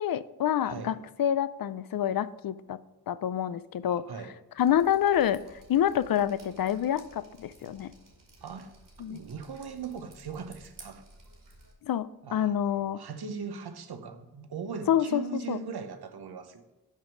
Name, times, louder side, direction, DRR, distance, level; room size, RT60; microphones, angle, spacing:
voice 1, 0.0-2.8 3.1-4.0 4.6-5.4 5.7-7.9 9.0-9.2 11.8-13.0 14.9-15.6, left 10 dB, 60° left, 16 dB, 0.5 m, -27 dB
voice 2, 0.6-1.0 3.9-4.4 8.4-8.7 9.0-11.1 12.2-16.6, right 5 dB, 75° right, 9 dB, 1.0 m, -39 dB
Drip, 4.6-11.7, right 2 dB, 55° right, 2.4 m, -55 dB
6.5 x 5.2 x 5.9 m, 1.2 s
cardioid pair, 60°, 39 cm